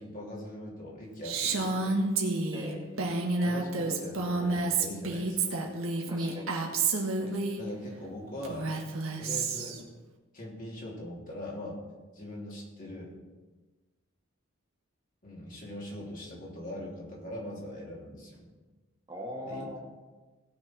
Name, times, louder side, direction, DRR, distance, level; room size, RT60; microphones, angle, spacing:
voice 1, 0.0-2.0 3.4-5.6 7.2-8.7 9.1-9.8 10.3-11.8 12.1-13.1 15.2-18.5 19.4-19.7, left 1 dB, 40° left, -4 dB, 3.0 m, -41 dB
Female speech woman speaking, 1.2-7.6 8.4-9.8, right 3 dB, 85° right, 1.6 m, -30 dB
voice 2, 2.5-3.2 6.1-6.6 19.1-19.8, left 1 dB, 20° right, -3 dB, 2.0 m, -41 dB
17.5 x 6.5 x 4.5 m, 1.2 s
head